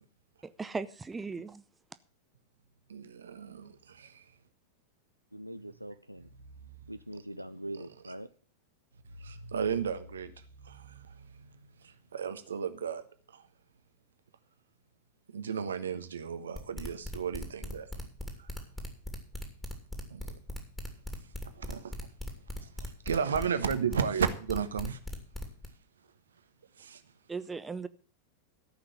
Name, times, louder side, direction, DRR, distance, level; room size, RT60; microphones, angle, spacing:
voice 1, 0.4-1.6 27.3-27.9, right 4 dB, 15° right, 0.6 m, -37 dB
voice 2, 2.9-4.2 9.2-10.3 10.6-13.0 13.3-13.4 15.3-17.9 18.4-18.5 20.1-20.3 21.6-22.0 22.6-25.0 26.8-27.0, right 7 dB, 70° right, 1.2 m, -34 dB
voice 3, 5.3-6.3 6.9-8.3, right 1 dB, 90° right, 0.5 m, -42 dB
sound 1, 16.5-25.7, left 1 dB, 10° left, 2.7 m, -39 dB
13.5 x 5.9 x 8.0 m
figure-of-eight pair, 90°, 0 cm